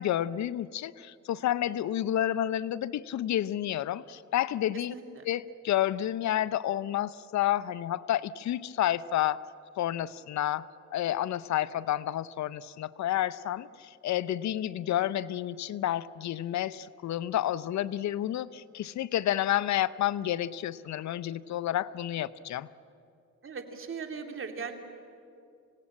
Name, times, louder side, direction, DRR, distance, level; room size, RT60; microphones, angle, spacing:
voice 1, 0.0-4.9 5.2-9.4 9.8-22.7, left 12 dB, 70° left, 17 dB, 0.7 m, -30 dB
voice 2, 4.9-5.2 23.4-24.8, right 5 dB, 45° right, 5 dB, 2.8 m, -39 dB
26.0 x 17.5 x 8.8 m, 2.5 s
cardioid pair, 90°, 30 cm